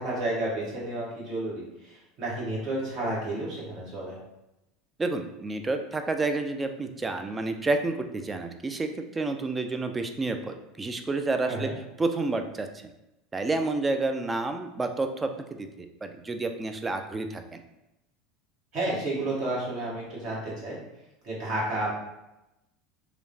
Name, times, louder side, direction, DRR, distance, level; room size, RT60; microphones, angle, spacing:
voice 1, 0.0-4.2 11.4-11.7 18.7-20.8 21.2-21.9, right 1 dB, 55° right, -6 dB, 1.3 m, -31 dB
voice 2, 5.0-11.7 12.0-12.7 13.3-17.6, right 3 dB, 20° right, 6 dB, 0.3 m, -30 dB
3.0 x 2.0 x 2.6 m, 0.92 s
hypercardioid pair, 85°, 0 cm